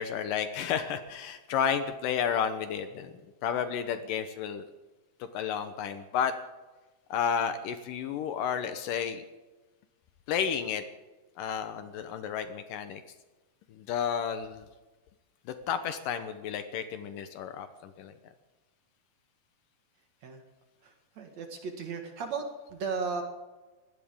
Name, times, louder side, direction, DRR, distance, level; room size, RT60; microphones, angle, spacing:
voice 1, 0.0-3.1 3.4-4.6 5.2-6.3 7.1-9.2 10.3-10.8 11.4-13.0 13.7-14.7 15.5-18.1, left 7 dB, 75° left, 9 dB, 2.3 m, -32 dB
voice 2, 20.8-23.2, right 5 dB, 55° right, 4 dB, 2.5 m, -35 dB
21.5 x 17.0 x 3.7 m, 1.2 s
omnidirectional pair, 4.3 m